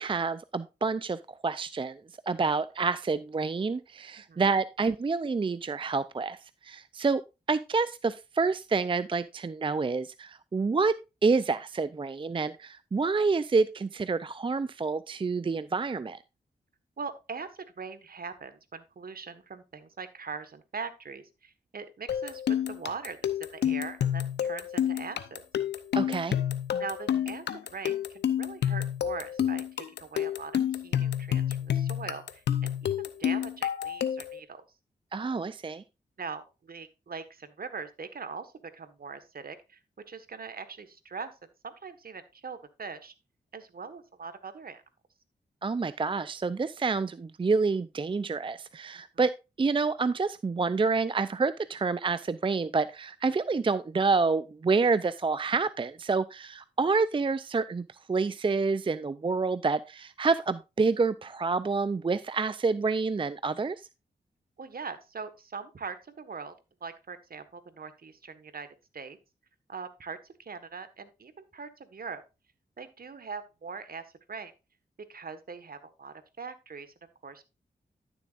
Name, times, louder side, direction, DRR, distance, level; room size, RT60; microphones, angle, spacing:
voice 1, 0.0-2.0 2.3-7.2 7.5-16.2 25.9-26.4 35.1-35.8 45.6-63.9, right 4 dB, 30° right, 15 dB, 0.5 m, -28 dB
voice 2, 17.0-25.4 26.8-27.4 27.7-34.6 36.2-39.8 40.1-41.4 41.6-43.1 43.5-44.8 64.6-66.5 66.8-69.2 69.7-72.2 72.8-74.5 75.1-76.9 77.2-77.5, right 5 dB, 60° right, 11 dB, 1.5 m, -41 dB
sound 1, 22.1-34.4, left 9 dB, 80° left, 0.8 m, -29 dB
12.5 x 7.0 x 2.5 m, 0.27 s
cardioid pair, 45°, 17 cm